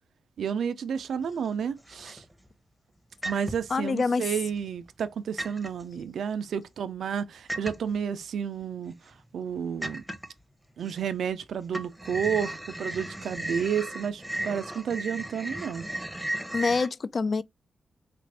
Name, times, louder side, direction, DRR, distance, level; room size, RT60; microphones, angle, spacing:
voice 1, 0.4-2.2 3.2-10.0 10.8-15.8, right 7 dB, 80° right, 0.4 m, -31 dB
sound 1, 1.0-1.5 1.9-2.5 3.2-3.8 4.4-5.1 5.4-5.8 7.5-8.0 8.6-8.7 9.1-9.2 9.8-10.4 10.8-11.4 11.7-16.9, right 1 dB, ahead, 0.8 m, -35 dB
voice 2, 3.7-4.3 16.5-17.4, left 4 dB, 50° left, 0.3 m, -26 dB
4.1 x 2.5 x 3.3 m
cardioid pair, 70°, 0 cm